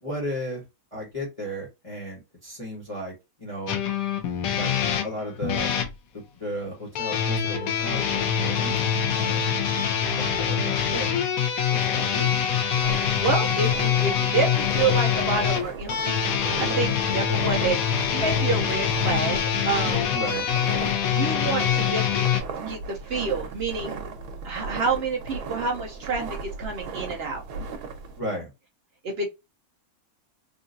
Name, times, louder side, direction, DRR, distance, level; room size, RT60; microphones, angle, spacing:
voice 1, 0.0-0.6 0.9-3.8 4.5-4.7 5.0-5.7 6.1-8.7 9.0-9.5 10.0-11.2 11.7-12.3 20.1-20.4 28.2-28.5, equal, 25° left, 1.2 m, -34 dB
sound 1, 3.7-5.9 6.9-22.4, left 8 dB, 70° left, 1.1 m, -24 dB
sound 2, 12.7-28.2, right 4 dB, 85° right, 1.3 m, -37 dB
voice 2, 13.1-17.8 18.1-19.4 19.6-20.0 21.1-22.3 22.7-24.0 24.4-27.4 29.0-29.3, right 4 dB, 60° right, 0.6 m, -28 dB
3.7 x 2.4 x 2.5 m
omnidirectional pair, 1.6 m